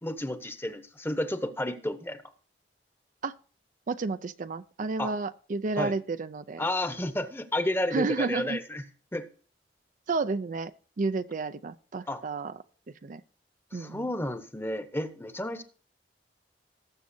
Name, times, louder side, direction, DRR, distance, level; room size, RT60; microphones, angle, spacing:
voice 1, 0.0-2.2 5.0-5.1 5.8-5.9 6.6-8.8 9.1-9.3 12.1-12.2 13.7-15.6, left 1 dB, 15° left, 0.9 m, -31 dB
voice 2, 3.9-6.6 7.9-8.6 10.1-10.7 11.0-12.6 13.0-13.2 13.7-14.1, right 3 dB, 45° right, 0.4 m, -31 dB
19.0 x 7.4 x 2.7 m
head